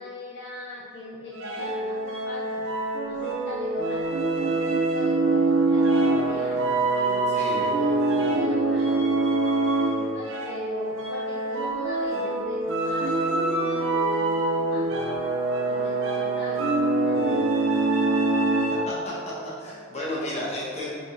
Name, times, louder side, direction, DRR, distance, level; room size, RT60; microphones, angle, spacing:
voice 1, 0.0-2.7 3.1-9.3 9.8-14.9 15.6-17.6, left 2 dB, 55° left, -3 dB, 0.4 m, -41 dB
sound 1, 1.4-19.1, right 2 dB, 70° right, 0.5 m, -24 dB
voice 2, 7.3-7.7 18.9-19.1 19.6-20.9, left 1 dB, 35° left, -6 dB, 1.1 m, -32 dB
5.1 x 3.8 x 2.5 m, 2.2 s
head